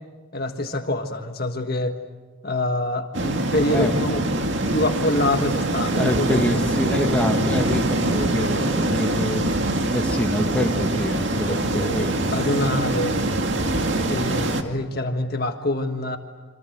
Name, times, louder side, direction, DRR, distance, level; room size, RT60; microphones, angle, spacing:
voice 1, 0.3-2.0 2.4-4.2 4.7-6.6 6.9-7.0 11.5-13.2 14.1-16.2, left 1 dB, 50° left, 5 dB, 1.6 m, -26 dB
sound 1, 3.1-14.6, right 1 dB, 60° right, 2.2 m, -24 dB
voice 2, 5.9-12.8 14.1-14.2, equal, 5° left, 1 dB, 2.4 m, -26 dB
28.5 x 26.0 x 8.0 m, 1.4 s
head